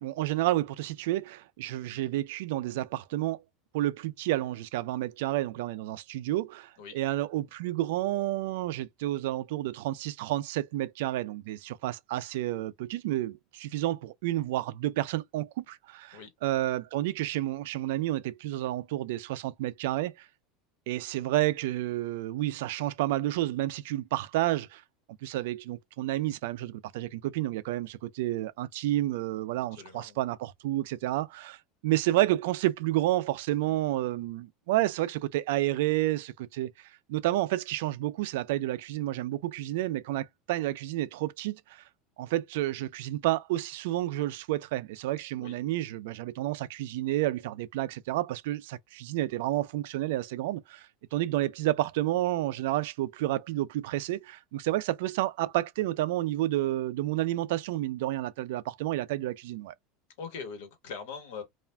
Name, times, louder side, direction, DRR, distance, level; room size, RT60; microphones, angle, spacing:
voice 1, 0.0-3.4 3.7-20.3 20.9-24.8 25.2-41.8 42.2-59.7, right 15 dB, 75° right, 0.3 m, -30 dB
voice 2, 29.7-30.2 45.4-45.6 60.2-61.4, left 5 dB, 80° left, 1.2 m, -41 dB
2.4 x 2.1 x 3.2 m
cardioid pair, 170°, 0 cm